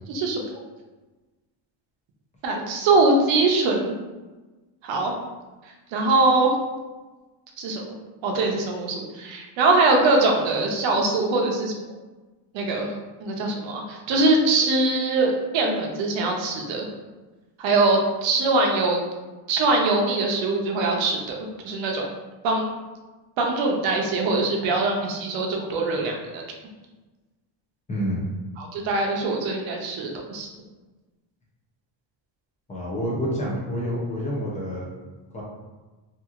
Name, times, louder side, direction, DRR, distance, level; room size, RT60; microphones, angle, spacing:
voice 1, 0.1-0.4 2.4-4.0 4.8-5.1 5.9-6.5 7.6-7.9 8.2-11.7 12.5-12.9 13.2-16.9 17.6-19.0 19.5-21.4 21.6-22.1 22.4-22.7 23.4-26.4 28.6-30.5, right 3 dB, 70° right, 1 dB, 0.7 m, -22 dB
voice 2, 27.9-28.3 32.7-34.9 35.3-35.4, equal, 15° left, -5 dB, 0.4 m, -28 dB
2.8 x 2.5 x 2.4 m, 1.2 s
cardioid pair, 160°, 47 cm